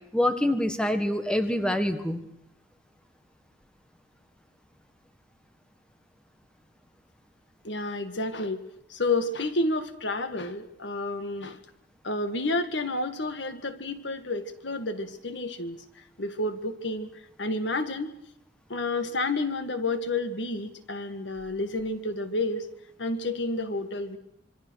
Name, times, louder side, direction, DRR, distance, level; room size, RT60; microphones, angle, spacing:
voice 1, 0.1-2.3, left 1 dB, 5° left, 8 dB, 1.5 m, -25 dB
voice 2, 7.6-8.6 8.9-11.6 12.0-15.8 16.2-17.1 17.4-18.1 18.7-22.7 23.0-24.2, left 2 dB, 70° left, 9 dB, 1.8 m, -30 dB
26.0 x 24.5 x 6.4 m, 0.78 s
head